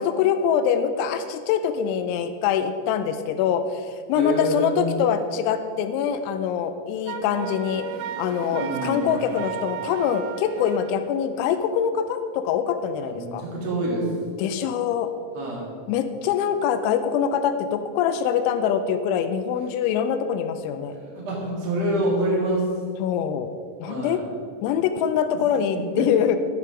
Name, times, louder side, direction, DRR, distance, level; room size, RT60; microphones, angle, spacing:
voice 1, 0.0-7.9 8.2-13.4 14.4-15.1 15.9-21.0 23.0-23.5 23.8-24.2 24.6-26.4, left 8 dB, 85° left, 9 dB, 2.7 m, -24 dB
voice 2, 4.1-4.9 8.5-9.3 13.1-14.1 15.3-15.7 21.1-22.7 23.9-24.2 25.3-25.4 25.7-26.1, right 1 dB, 45° right, -3 dB, 2.4 m, -27 dB
Motorcycle, 6.9-11.5, right 1 dB, 65° right, 4.9 m, -44 dB
Wind instrument woodwind instrument, 7.1-11.0, right 10 dB, 85° right, 3.2 m, -34 dB
10.5 x 9.5 x 5.0 m, 2.1 s
omnidirectional pair, 5.9 m